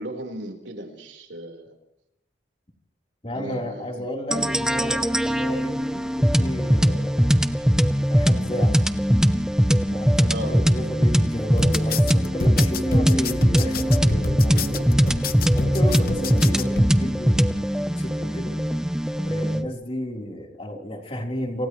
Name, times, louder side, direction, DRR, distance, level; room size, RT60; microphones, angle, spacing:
voice 1, 0.0-1.7 3.3-4.7 10.3-10.6, right 1 dB, 80° right, 2 dB, 4.4 m, -36 dB
voice 2, 3.2-7.2 8.1-8.8 9.9-15.1 15.5-17.4 17.9-18.6 19.3-21.7, equal, 30° left, 1 dB, 4.0 m, -32 dB
sound 1, 4.3-19.7, equal, 5° right, 0.7 m, -21 dB
sound 2, 11.6-16.9, left 4 dB, 50° left, 1.0 m, -29 dB
sound 3, 13.3-18.5, right 1 dB, 50° right, 1.9 m, -36 dB
29.5 x 27.5 x 3.2 m, 0.80 s
head